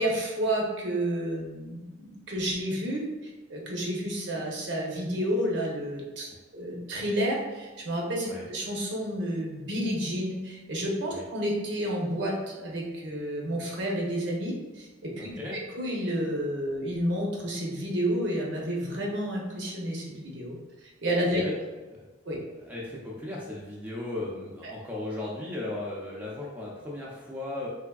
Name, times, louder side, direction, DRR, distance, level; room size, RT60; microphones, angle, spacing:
voice 1, 0.0-15.3 15.7-20.6 21.0-21.4 22.3-22.4, equal, 60° right, -1 dB, 0.7 m, -30 dB
voice 2, 15.2-15.6 21.3-21.5 21.9-22.0 22.6-27.7, left 2 dB, 10° right, -5 dB, 0.4 m, -36 dB
3.4 x 3.2 x 2.3 m, 1.2 s
head